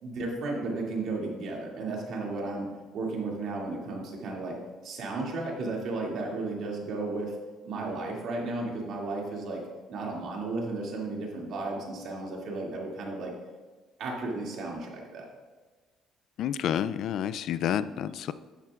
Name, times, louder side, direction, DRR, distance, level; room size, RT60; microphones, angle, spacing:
voice 1, 0.0-2.7 2.9-4.6 4.8-7.3 7.6-9.6 9.9-13.3 14.0-15.3, right 3 dB, 65° right, -1 dB, 2.4 m, -34 dB
voice 2, 16.4-18.3, left 9 dB, 65° left, 15 dB, 0.3 m, -29 dB
12.5 x 8.8 x 2.4 m, 1.3 s
cardioid pair, 120°, 0 cm